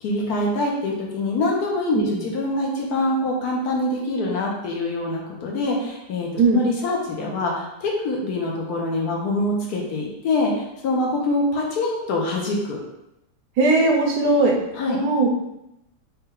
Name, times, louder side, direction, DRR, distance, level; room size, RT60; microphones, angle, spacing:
voice 1, 0.0-12.8 14.8-15.0, left 2 dB, 70° left, -2 dB, 1.2 m, -24 dB
voice 2, 13.6-14.6 14.9-15.3, right 2 dB, 75° right, 0 dB, 1.2 m, -18 dB
4.2 x 2.2 x 3.7 m, 0.87 s
omnidirectional pair, 1.9 m